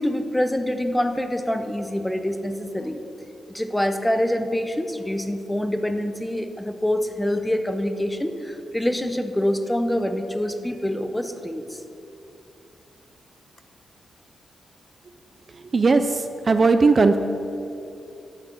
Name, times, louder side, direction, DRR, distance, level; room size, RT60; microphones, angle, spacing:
voice 1, 0.0-11.8, left 1 dB, 5° left, 8 dB, 0.7 m, -26 dB
voice 2, 15.7-17.2, right 4 dB, 35° right, 8 dB, 0.5 m, -18 dB
9.7 x 6.4 x 8.2 m, 2.7 s
wide cardioid pair, 130°, 0 cm